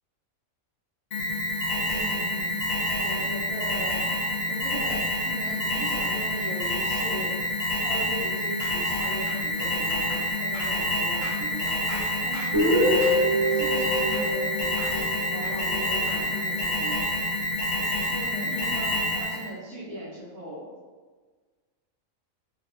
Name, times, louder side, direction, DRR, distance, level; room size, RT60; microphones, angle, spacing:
Alarm, 1.1-19.5, left 1 dB, 75° left, 0.4 m, -28 dB
voice 1, 1.9-2.6 3.0-4.0 4.5-7.4 7.7-13.2 13.5-14.8 15.3-17.2 18.1-20.7, right 1 dB, 80° right, -8 dB, 1.2 m, -39 dB
sound 1, 8.6-14.5 14.8-16.2, right 1 dB, 60° right, 1.3 m, -43 dB
Guitar, 12.5-16.4, equal, 25° right, 0.7 m, -26 dB
3.0 x 2.1 x 2.5 m, 1.4 s
omnidirectional pair, 1.4 m